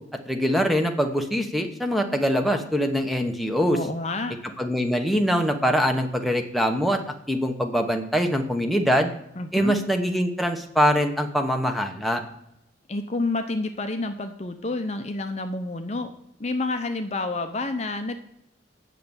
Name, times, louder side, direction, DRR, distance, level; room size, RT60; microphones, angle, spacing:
voice 1, 0.3-3.8 4.6-7.0 7.3-9.1 9.5-12.2, equal, ahead, 4 dB, 0.9 m, -23 dB
voice 2, 3.7-4.3 9.4-9.7 12.9-16.1 16.4-18.2, left 2 dB, 35° left, 7 dB, 0.6 m, -29 dB
8.4 x 6.6 x 7.0 m, 0.82 s
head